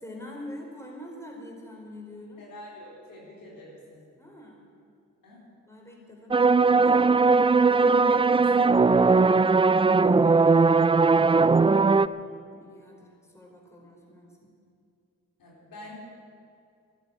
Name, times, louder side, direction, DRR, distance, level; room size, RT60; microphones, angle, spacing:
voice 1, 0.0-2.4 4.2-4.7 5.7-7.1 12.1-14.5, left 1 dB, 10° left, -1 dB, 4.5 m, -45 dB
voice 2, 2.4-4.1 5.2-5.4 7.7-9.4 10.0-11.2 15.4-15.9, left 1 dB, 85° left, -4 dB, 4.2 m, -45 dB
sound 1, 6.3-12.1, right 4 dB, 15° right, 0.4 m, -19 dB
12.0 x 12.0 x 9.6 m, 2.4 s
cardioid pair, 50°, 33 cm